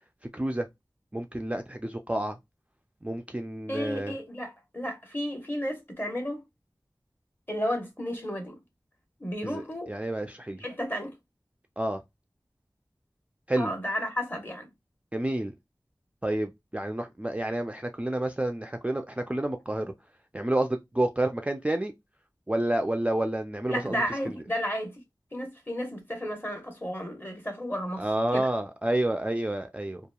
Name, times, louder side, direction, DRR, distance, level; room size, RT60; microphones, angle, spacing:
voice 1, 0.3-0.7 1.1-2.4 3.0-4.1 9.4-9.6 9.9-10.6 11.8-12.0 13.5-13.7 15.1-15.5 16.2-19.9 20.3-21.9 22.5-24.0 28.0-30.0, right 1 dB, 15° right, 0.3 m, -29 dB
voice 2, 3.7-6.4 7.5-8.6 9.2-9.9 10.6-11.1 13.5-14.7 18.9-19.0 23.7-25.0 25.3-28.5, equal, 25° left, 1.0 m, -33 dB
2.8 x 2.3 x 2.2 m
wide cardioid pair, 50°, 8 cm